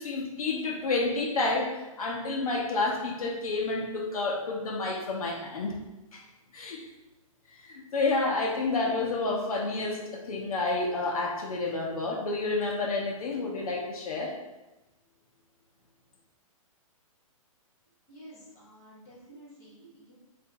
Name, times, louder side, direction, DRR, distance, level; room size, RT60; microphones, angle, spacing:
voice 1, 0.0-5.7 6.1-6.2 6.5-6.8 7.7-14.3, left 3 dB, 80° left, -2 dB, 0.8 m, -29 dB
voice 2, 18.1-20.2, right 1 dB, 10° left, -11 dB, 0.8 m, -51 dB
2.8 x 2.6 x 3.4 m, 1.0 s
hypercardioid pair, 175°, 18 cm